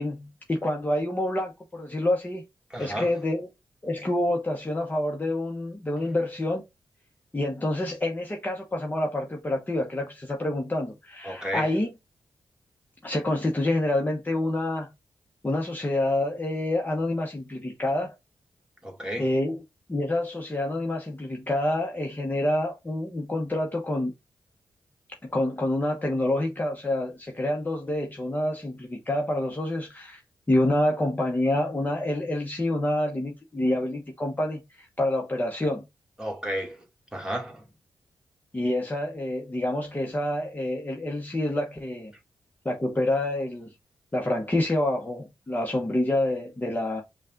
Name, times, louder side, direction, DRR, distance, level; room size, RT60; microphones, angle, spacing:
voice 1, 0.0-2.4 2.8-3.5 3.8-6.6 7.3-11.9 13.0-14.9 15.4-18.1 19.2-19.6 19.9-24.1 25.2-30.2 30.5-35.8 38.5-42.1 42.6-43.7 44.1-47.0, left 1 dB, 20° left, 1.1 m, -27 dB
voice 2, 2.7-3.1 11.3-11.7 18.8-19.2 36.2-36.8 37.1-37.6, equal, 10° right, 2.0 m, -32 dB
5.3 x 2.4 x 3.7 m
cardioid pair, 60°, 8 cm